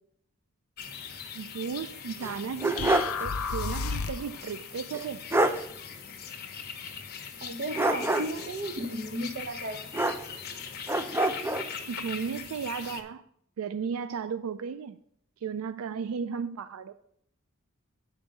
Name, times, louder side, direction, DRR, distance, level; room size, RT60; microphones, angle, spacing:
sound 1, 0.8-13.0, left 7 dB, 50° left, 1.0 m, -41 dB
voice 1, 1.3-5.2 11.9-13.2 13.6-15.0 15.4-16.9, right 6 dB, 75° right, 0.4 m, -35 dB
sound 2, 2.2-3.2 3.6-3.7 4.9-5.0 5.3-5.6 7.7-8.5 9.9-10.5 10.9-11.7, right 2 dB, 10° right, 0.4 m, -26 dB
sound 3, 2.8-4.4, left 5 dB, 90° left, 0.5 m, -31 dB
voice 2, 7.4-9.9, right 1 dB, 45° right, 0.7 m, -34 dB
8.0 x 5.3 x 6.4 m
head